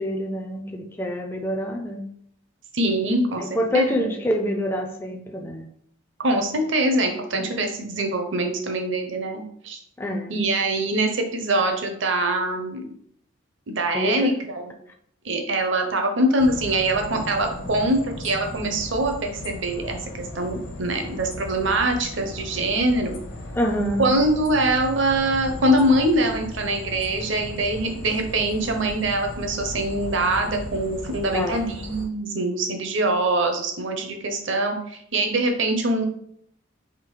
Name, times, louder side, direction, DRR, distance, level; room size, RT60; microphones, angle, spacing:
voice 1, 0.0-2.1 3.4-5.7 7.3-7.6 10.0-10.5 13.9-14.4 17.6-17.8 23.5-24.1 31.3-31.7, left 1 dB, 10° left, 2 dB, 0.4 m, -26 dB
voice 2, 2.7-4.1 6.2-9.8 10.3-12.8 13.7-14.7 15.2-23.2 24.0-36.0, right 1 dB, 65° right, 4 dB, 0.8 m, -23 dB
sound 1, 16.4-32.1, left 1 dB, 55° left, 0.7 m, -37 dB
3.7 x 3.0 x 4.7 m, 0.68 s
head